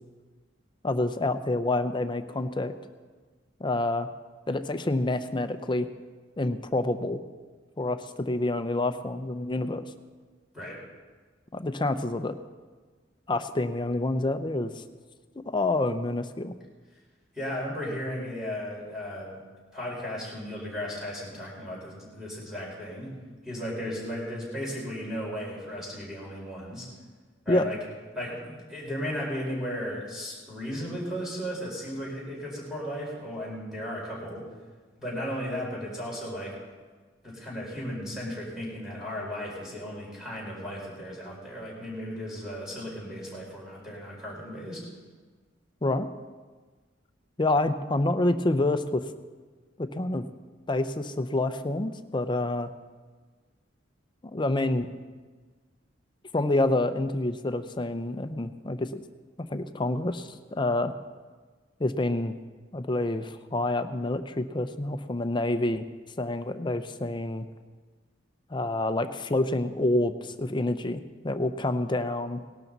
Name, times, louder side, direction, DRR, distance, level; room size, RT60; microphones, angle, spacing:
voice 1, 0.8-2.7 3.6-4.1 4.5-5.9 6.4-7.2 7.8-9.8 11.5-12.4 13.3-14.7 15.4-16.5 27.5-27.7 45.8-46.1 47.4-49.0 49.8-50.2 50.7-52.7 54.3-54.9 56.3-59.0 59.4-60.9 61.8-62.4 62.7-65.9 66.2-67.5 68.5-72.4, left 2 dB, 25° left, 10 dB, 0.6 m, -27 dB
voice 2, 17.3-19.4 19.7-23.1 23.4-26.9 27.4-27.8 28.1-34.5 35.0-36.5 37.2-44.8, equal, 5° right, -5 dB, 4.6 m, -35 dB
18.5 x 12.0 x 4.1 m, 1.4 s
head